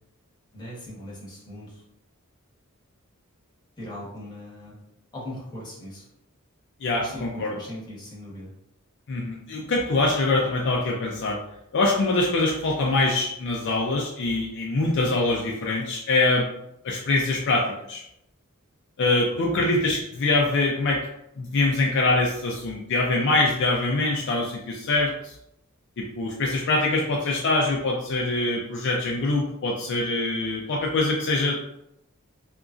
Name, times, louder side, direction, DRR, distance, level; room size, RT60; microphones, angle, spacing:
voice 1, 0.5-1.8 3.8-4.7 5.1-6.0 7.0-8.5 19.5-19.7, left 1 dB, 20° left, -6 dB, 1.0 m, -39 dB
voice 2, 6.8-7.6 9.1-11.4 11.7-16.5 16.8-18.0 19.0-21.0 21.4-25.4 26.0-31.7, left 2 dB, 55° left, -1 dB, 0.4 m, -24 dB
2.9 x 2.4 x 2.4 m, 0.79 s
head